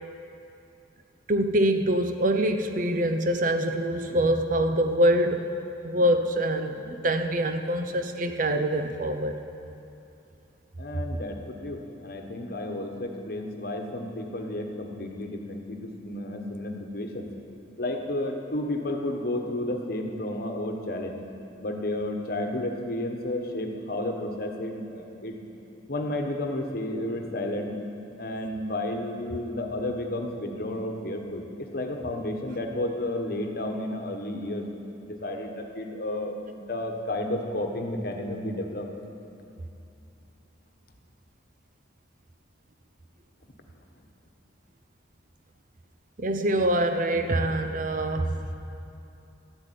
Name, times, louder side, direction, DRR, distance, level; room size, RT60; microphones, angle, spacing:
voice 1, 1.3-5.4 5.8-9.3 46.2-48.3, right 1 dB, 45° right, 7 dB, 0.7 m, -24 dB
voice 2, 10.8-17.3 17.8-21.2 21.6-25.4 25.9-27.7 28.2-34.6 35.0-38.9, left 1 dB, 55° left, 3 dB, 1.2 m, -32 dB
12.5 x 8.1 x 9.2 m, 2.7 s
head